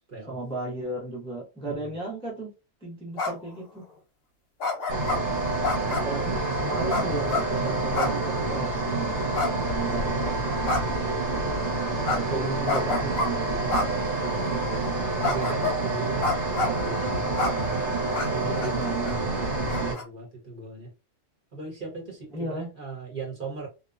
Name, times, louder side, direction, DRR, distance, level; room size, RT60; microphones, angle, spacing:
voice 1, 0.3-2.5 2.8-3.9 5.9-10.4 12.0-13.9 18.5-19.9 22.3-22.7, right 2 dB, 5° left, 0.6 m, -34 dB
sound 1, 3.2-3.5 4.6-5.2 5.6-6.2 6.9-7.5 7.9-8.2 8.5-8.6 9.3-10.1 10.7-11.0 12.1-12.2 12.7-13.3 13.7-13.9 14.4-14.5 15.2-15.8 16.2-16.8 17.4-17.5 18.1-18.3 18.6-18.7 19.0-19.1 19.7-20.0, left 3 dB, 55° left, 0.9 m, -28 dB
sound 2, 4.9-19.9, right 2 dB, 80° right, 1.4 m, -28 dB
voice 2, 15.2-17.7 18.2-18.7 19.8-20.9 21.5-23.7, right 4 dB, 45° right, 1.1 m, -38 dB
2.8 x 2.1 x 2.3 m
omnidirectional pair, 1.3 m